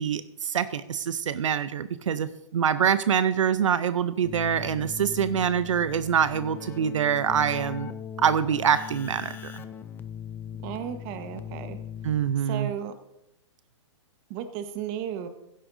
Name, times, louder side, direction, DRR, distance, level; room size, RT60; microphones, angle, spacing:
voice 1, 0.0-7.9 8.2-9.6 12.0-12.7, right 8 dB, 85° right, 13 dB, 0.6 m, -25 dB
Keyboard (musical), 4.2-12.6, left 8 dB, 15° left, 0.4 m, -40 dB
voice 2, 10.6-11.8 12.4-12.9 14.3-15.3, right 9 dB, 35° right, 9 dB, 1.2 m, -34 dB
16.0 x 9.9 x 2.6 m, 0.83 s
hypercardioid pair, 135°, 16 cm